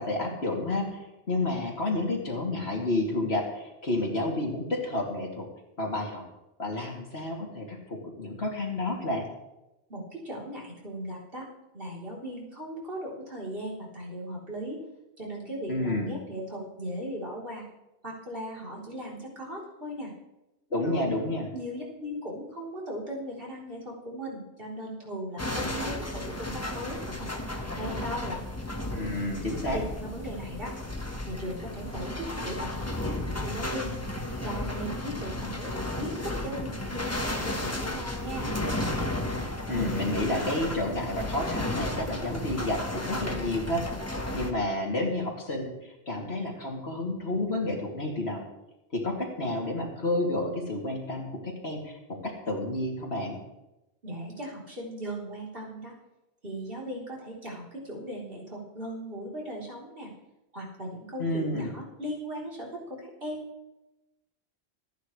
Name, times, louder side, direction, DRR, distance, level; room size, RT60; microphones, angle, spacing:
voice 1, 0.0-5.5 5.8-6.2 6.6-9.2 15.7-16.1 20.7-21.5 28.9-29.8 39.7-43.8 44.3-48.4 48.9-52.0 52.2-53.4 61.2-61.7, left 2 dB, 65° left, -1 dB, 3.1 m, -30 dB
voice 2, 9.9-11.5 11.7-14.8 15.2-17.6 18.0-20.1 20.8-21.2 21.5-28.4 29.7-30.8 31.3-33.9 34.4-38.5 54.0-56.0 56.4-60.1 60.5-63.4, equal, 55° right, -4 dB, 4.0 m, -38 dB
sound 1, 25.4-44.5, left 1 dB, 15° left, 1.3 m, -33 dB
25.5 x 10.5 x 3.3 m, 0.94 s
omnidirectional pair, 1.1 m